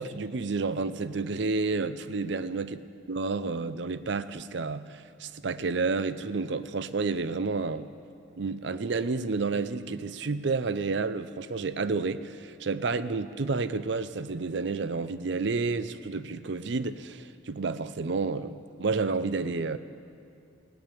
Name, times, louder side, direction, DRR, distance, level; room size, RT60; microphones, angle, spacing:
voice 1, 0.0-2.8 3.1-7.9 8.4-19.8, right 4 dB, 60° right, 14 dB, 0.5 m, -30 dB
16.5 x 8.8 x 9.7 m, 2.5 s
head